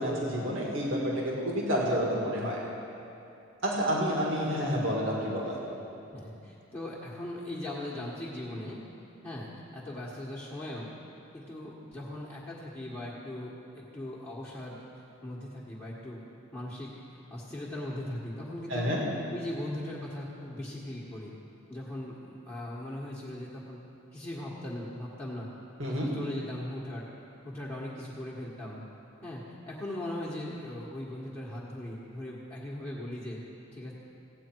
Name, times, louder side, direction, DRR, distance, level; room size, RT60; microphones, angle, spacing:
voice 1, 0.0-2.6 3.6-5.5 18.7-19.0 25.8-26.1, equal, 65° right, -3 dB, 2.2 m, -29 dB
voice 2, 6.1-8.8 9.2-9.5 9.7-10.9 11.3-14.8 15.2-16.2 16.5-18.9 19.3-21.3 21.7-23.8 24.1-25.5 25.9-27.0 27.4-28.8 29.2-33.4 33.7-33.9, left 1 dB, 10° left, -8 dB, 1.4 m, -39 dB
16.5 x 8.9 x 4.6 m, 2.7 s
head